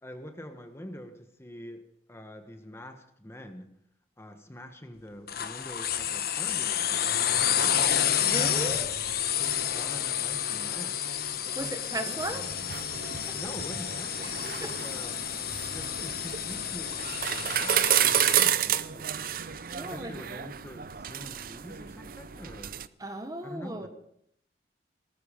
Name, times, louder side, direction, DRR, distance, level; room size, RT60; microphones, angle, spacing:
voice 1, 0.0-3.7 4.2-7.9 8.6-8.8 9.3-11.0 11.4-13.0 13.3-15.2 15.7-19.1 19.7-22.8 23.4-23.9, left 1 dB, 15° left, 6 dB, 1.2 m, -45 dB
sound 1, 5.3-18.5, left 9 dB, 55° left, 1.0 m, -30 dB
voice 2, 8.2-8.9 11.6-12.5 13.1-13.4 14.2-14.4 14.6-14.7 19.7-20.1 23.0-23.9, right 1 dB, 20° right, 7 dB, 1.3 m, -36 dB
sound 2, 12.2-22.9, right 10 dB, 50° right, 0.6 m, -31 dB
19.5 x 13.5 x 5.1 m, 0.72 s
head